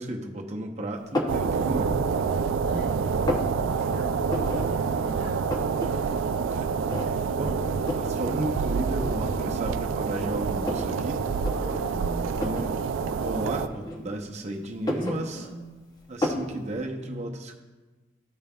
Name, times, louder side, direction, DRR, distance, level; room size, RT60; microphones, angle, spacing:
voice 1, 0.0-1.9 6.5-6.7 7.4-7.6 7.9-11.2 12.4-12.7 13.1-15.4 16.1-17.5, right 1 dB, 35° right, 2 dB, 0.8 m, -33 dB
sound 1, 1.1-1.5 2.0-2.6 2.9-3.5 4.3-4.7 5.0-5.1 5.3-5.9 6.2-6.3 6.9-7.4 7.9-8.1 9.0-9.1 9.6-10.9 11.3-11.6 12.3-12.7 13.7-14.3 14.7-15.7 16.2-16.5, left 1 dB, 20° left, 0.7 m, -30 dB
sound 2, 1.3-13.7, right 5 dB, 80° right, 0.3 m, -27 dB
voice 2, 2.6-3.1 3.6-5.6 7.4-7.8 11.3-12.4 14.9-15.8, equal, 45° left, -1 dB, 1.7 m, -42 dB
14.0 x 5.2 x 2.3 m, 1.2 s
head